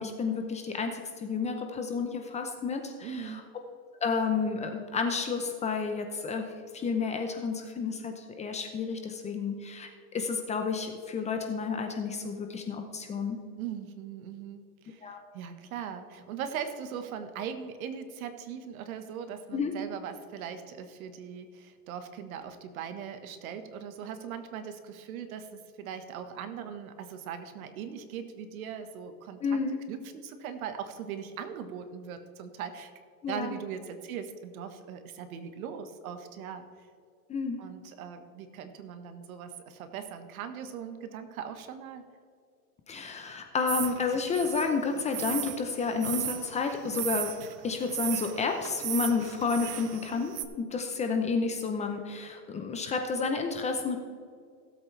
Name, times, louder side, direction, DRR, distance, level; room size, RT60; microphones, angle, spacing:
voice 1, 0.0-3.4 4.0-6.5 6.7-13.4 15.0-15.2 19.5-19.7 29.4-29.8 33.2-33.5 37.3-37.6 42.9-47.4 47.6-54.0, left 5 dB, 15° left, 5 dB, 0.7 m, -31 dB
voice 2, 3.0-3.5 13.6-25.5 25.8-29.6 29.9-32.9 33.3-36.6 37.6-42.0, right 8 dB, 65° right, 8 dB, 1.4 m, -40 dB
sound 1, 43.7-50.4, right 12 dB, 85° right, 1.0 m, -36 dB
17.0 x 8.1 x 3.3 m, 2.2 s
supercardioid pair, 140°, 46 cm